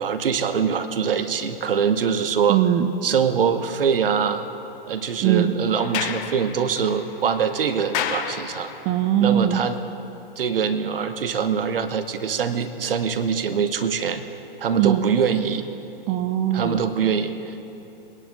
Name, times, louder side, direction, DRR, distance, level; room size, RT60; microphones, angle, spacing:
voice 1, 0.0-2.6 3.0-4.5 4.9-8.7 9.2-9.8 10.4-14.2 14.6-15.6 16.5-17.6, right 7 dB, 65° right, 9 dB, 1.0 m, -23 dB
voice 2, 2.5-2.9 5.2-5.5 8.9-9.6 14.8-15.0 16.1-16.8, right 10 dB, 20° right, 10 dB, 0.3 m, -20 dB
Sliding door, 5.7-9.0, left 8 dB, 30° left, 0.7 m, -32 dB
20.5 x 11.0 x 3.7 m, 2.9 s
figure-of-eight pair, 110°, 30 cm